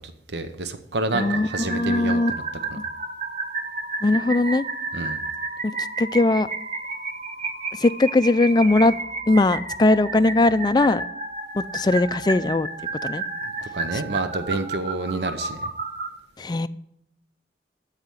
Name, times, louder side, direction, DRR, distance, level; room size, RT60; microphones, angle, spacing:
voice 1, 0.0-2.4 2.7-2.8 4.9-5.2 13.3-15.7, right 2 dB, 75° right, 9 dB, 0.8 m, -29 dB
voice 2, 1.1-2.3 2.7-2.8 4.0-4.6 5.6-5.7 6.0-6.5 7.7-8.9 9.3-11.0 11.5-12.7 13.0-13.2 13.9-14.0 16.4-16.7, left 2 dB, 25° left, 13 dB, 0.3 m, -20 dB
sound 1, 1.1-16.1, right 3 dB, 40° right, 1.1 m, -31 dB
14.0 x 4.9 x 7.7 m, 0.78 s
head